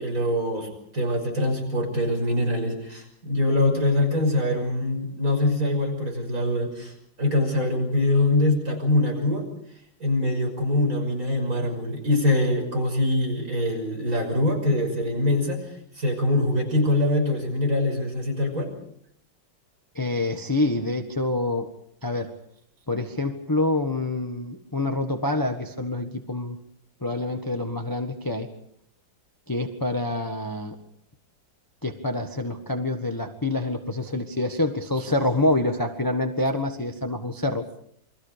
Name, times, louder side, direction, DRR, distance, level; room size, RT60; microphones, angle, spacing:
voice 1, 0.0-6.9 7.2-9.4 10.0-15.6 15.9-18.7, left 1 dB, 45° right, 2 dB, 6.5 m, -24 dB
voice 2, 19.9-21.7 22.0-22.3 22.9-26.6 27.0-28.5 29.5-30.7 31.8-37.6, left 2 dB, 10° left, 4 dB, 1.3 m, -26 dB
29.0 x 23.5 x 5.1 m, 0.69 s
omnidirectional pair, 2.1 m